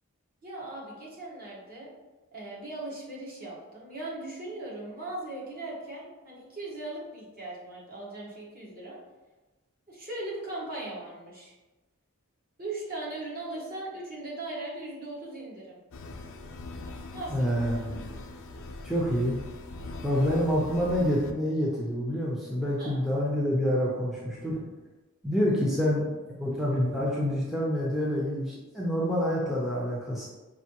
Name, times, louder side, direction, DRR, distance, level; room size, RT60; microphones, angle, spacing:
voice 1, 0.4-1.9 2.3-9.0 9.9-11.5 12.6-15.8 17.1-17.5 20.1-20.4 22.8-23.0, right 2 dB, 45° right, -5 dB, 1.3 m, -39 dB
sound 1, 15.9-21.3, left 2 dB, 65° left, 0.5 m, -41 dB
voice 2, 17.3-18.0 18.8-19.4 20.0-24.7 25.2-30.3, equal, ahead, -6 dB, 0.6 m, -27 dB
5.4 x 2.7 x 2.9 m, 1.2 s
head